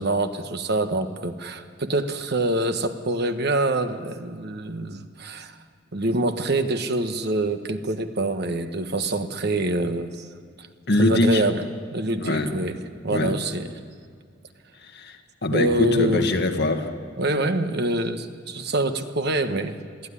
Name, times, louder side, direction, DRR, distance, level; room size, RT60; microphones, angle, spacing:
voice 1, 0.0-5.5 5.9-10.3 11.0-11.6 11.9-12.8 13.0-13.7 15.5-16.2 17.2-19.8, right 2 dB, 55° right, 8 dB, 1.3 m, -25 dB
voice 2, 10.9-11.4 12.2-12.5 13.1-13.4 14.8-16.9, left 2 dB, 55° left, 4 dB, 1.9 m, -23 dB
22.5 x 15.0 x 9.9 m, 2.1 s
head